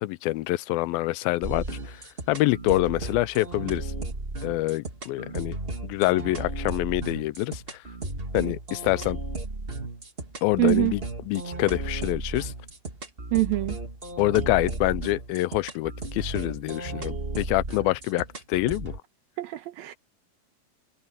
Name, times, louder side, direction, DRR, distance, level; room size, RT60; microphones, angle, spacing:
voice 1, 0.0-2.0 2.3-3.9 4.4-5.6 5.8-7.8 8.3-9.2 10.4-12.5 14.2-18.9, left 18 dB, 80° left, 2.4 m, -26 dB
sound 1, 1.4-19.0, right 2 dB, 25° right, 1.2 m, -35 dB
voice 2, 10.6-10.9 13.3-13.8 19.4-20.0, right 19 dB, 80° right, 2.9 m, -24 dB
omnidirectional pair, 4.2 m